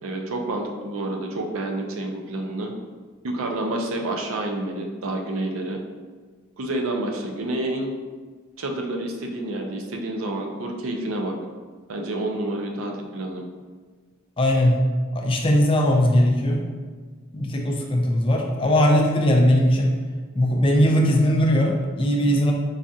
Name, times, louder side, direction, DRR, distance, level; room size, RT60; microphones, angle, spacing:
voice 1, 0.0-2.7 3.2-5.8 6.6-7.9 8.6-11.4 11.9-13.4, right 1 dB, 70° right, 2 dB, 0.5 m, -29 dB
voice 2, 14.4-14.8 15.1-16.6 17.3-19.9 20.4-22.5, equal, 25° left, 0 dB, 0.3 m, -19 dB
4.7 x 2.4 x 2.7 m, 1.5 s
head